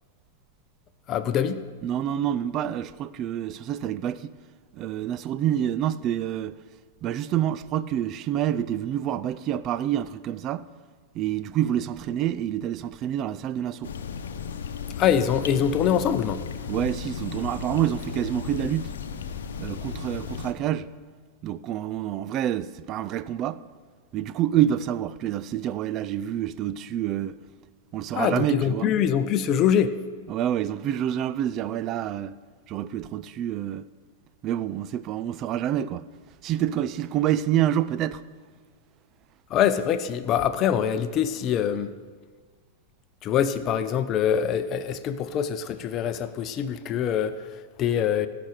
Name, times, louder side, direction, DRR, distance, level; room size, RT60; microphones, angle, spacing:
voice 1, 1.1-1.6 15.0-16.4 28.1-29.9 39.5-41.9 43.2-48.3, left 9 dB, 35° left, 0.7 m, -24 dB
voice 2, 1.8-4.3 4.7-6.5 7.0-10.7 11.1-13.9 16.7-18.9 19.6-20.9 21.4-23.6 24.1-27.4 27.9-28.9 30.3-32.3 32.7-33.9 34.4-36.1 36.4-38.2, right 11 dB, 40° right, 0.5 m, -27 dB
sound 1, 13.8-20.5, left 6 dB, 75° left, 0.9 m, -35 dB
15.5 x 6.0 x 6.7 m
hypercardioid pair, 110°, 0 cm